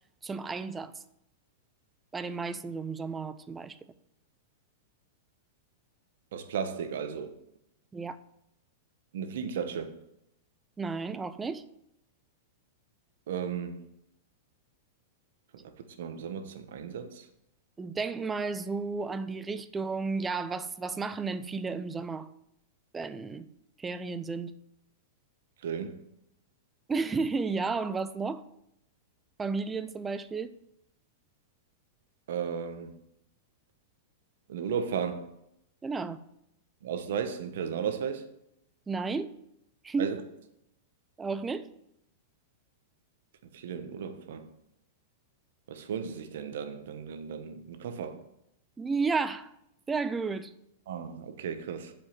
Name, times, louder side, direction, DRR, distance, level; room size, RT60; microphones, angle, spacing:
voice 1, 0.2-0.9 2.1-3.8 7.9-8.2 10.8-11.6 17.8-22.3 22.9-23.5 23.8-24.5 26.9-28.4 29.4-30.5 35.8-36.2 38.9-39.3 39.8-40.2 41.2-41.7 48.8-49.5 49.9-50.5, right 4 dB, 15° right, 0.5 m, -32 dB
voice 2, 6.3-7.3 9.1-10.0 13.3-13.9 15.6-15.7 16.0-17.3 25.6-26.0 32.3-33.0 34.5-35.3 36.8-38.3 40.0-40.2 43.5-44.5 45.7-48.2 50.9-51.9, right 7 dB, 75° right, 1.1 m, -35 dB
7.5 x 5.4 x 7.4 m
supercardioid pair, 140°, 0 cm